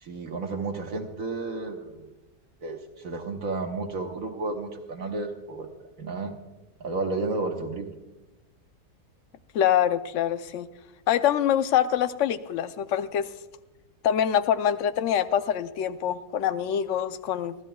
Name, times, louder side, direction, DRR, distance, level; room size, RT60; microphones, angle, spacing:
voice 1, 0.0-2.1 2.6-5.7 6.0-6.3 6.8-7.9, right 3 dB, 60° right, 3 dB, 1.5 m, -32 dB
voice 2, 9.5-10.7 11.1-13.3 14.0-17.5, left 10 dB, 60° left, 11 dB, 0.9 m, -25 dB
29.0 x 12.5 x 2.3 m, 1.0 s
omnidirectional pair, 1.6 m